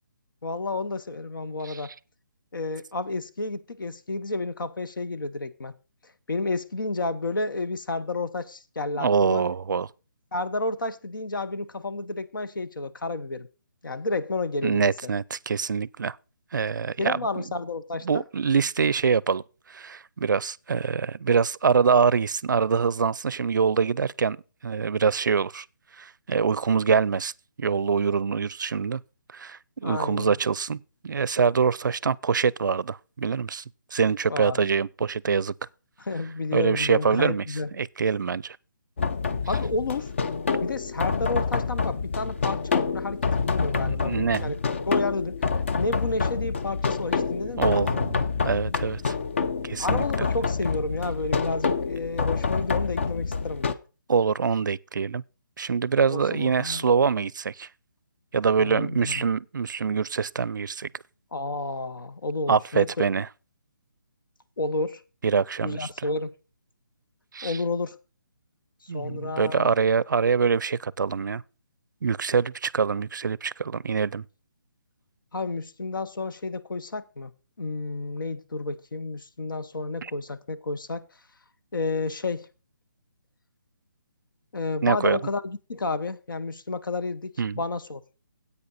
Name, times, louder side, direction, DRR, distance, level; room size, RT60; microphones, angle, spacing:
voice 1, 0.4-1.9 2.5-5.7 6.3-9.4 10.3-13.5 13.8-15.1 17.0-18.2 29.8-30.3 34.3-34.7 36.1-37.7 39.5-40.1 40.6-44.6 44.9-45.4 45.8-47.8 49.8-53.7 56.1-56.9 58.6-59.3 61.3-63.0 64.6-65.0 65.6-66.3 67.4-68.0 68.8-69.7 75.3-77.3 77.6-81.1 81.7-82.5 84.5-88.0, left 3 dB, 80° left, 1.1 m, -31 dB
voice 2, 8.9-9.9 14.6-16.2 16.5-17.4 18.0-24.4 24.6-25.7 26.0-27.3 27.6-29.0 29.3-33.6 33.9-35.5 36.5-37.4 37.8-38.6 43.7-44.5 47.6-49.1 49.6-50.1 54.1-55.2 55.6-57.7 58.3-60.9 62.5-63.3 65.2-65.9 67.3-67.6 68.9-71.4 72.0-74.2 80.0-80.1 84.8-85.2 87.4-87.6, right 5 dB, 70° right, 0.4 m, -24 dB
sound 1, 39.0-53.7, left 5 dB, 35° left, 0.6 m, -27 dB
10.5 x 8.4 x 4.1 m
hypercardioid pair, 175°, 11 cm